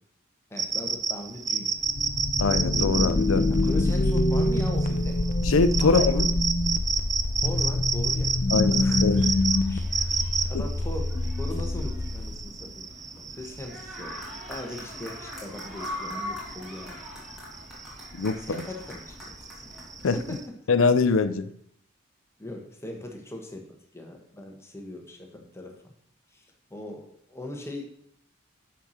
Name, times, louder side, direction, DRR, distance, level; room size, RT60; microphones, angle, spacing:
voice 1, 0.5-1.8 3.5-5.2 5.8-6.2 7.4-9.3 9.7-9.9 10.5-12.8 13.3-14.2 14.5-17.0 18.4-19.6 20.1-20.4 22.4-25.9 26.3-26.4 26.7-27.9, left 1 dB, 15° left, 1 dB, 1.3 m, -39 dB
sound 1, 0.6-20.5, right 5 dB, 15° right, 0.4 m, -31 dB
sound 2, 1.8-12.5, left 2 dB, 40° left, 0.7 m, -26 dB
voice 2, 2.4-3.4 5.4-6.3 8.5-9.2 18.1-18.6 20.0-20.1 20.7-21.5, left 4 dB, 85° left, 12 dB, 0.5 m, -23 dB
sound 3, 2.9-20.4, left 1 dB, ahead, 2.8 m, -44 dB
6.9 x 5.8 x 6.5 m, 0.70 s
head